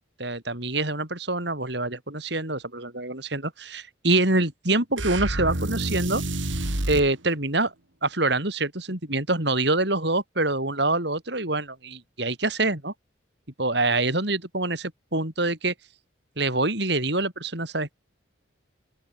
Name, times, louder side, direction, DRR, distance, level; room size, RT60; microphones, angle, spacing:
voice 1, 0.2-6.2 6.9-7.7 8.0-12.9 13.6-15.7 16.4-17.9, right 2 dB, 60° right, 4.9 m, -25 dB
sound 1, 5.0-7.1, right 1 dB, 75° right, 3.5 m, -28 dB
open air
head